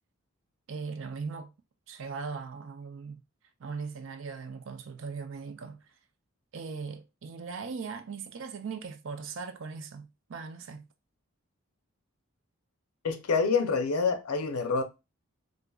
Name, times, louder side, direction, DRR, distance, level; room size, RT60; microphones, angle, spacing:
voice 1, 0.7-1.5 1.9-3.2 3.6-5.8 6.5-10.9, right 5 dB, 60° right, 0.4 m, -39 dB
voice 2, 13.0-14.8, left 4 dB, 85° left, 0.6 m, -27 dB
4.8 x 2.5 x 2.3 m
head